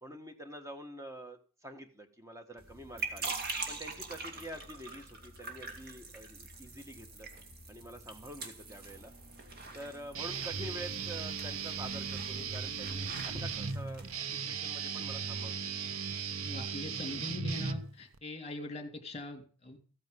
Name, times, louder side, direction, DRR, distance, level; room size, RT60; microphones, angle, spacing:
voice 1, 0.0-3.3 3.7-7.3 7.7-9.1 9.7-14.1 14.5-15.7, equal, 15° right, 6 dB, 1.7 m, -47 dB
sound 1, 2.6-14.2, right 3 dB, 45° right, 2.4 m, -44 dB
Guitar, 10.1-18.2, right 5 dB, 75° right, 0.9 m, -37 dB
voice 2, 16.4-19.8, left 2 dB, 30° left, 4 dB, 3.1 m, -42 dB
15.0 x 9.2 x 5.4 m, 0.39 s
head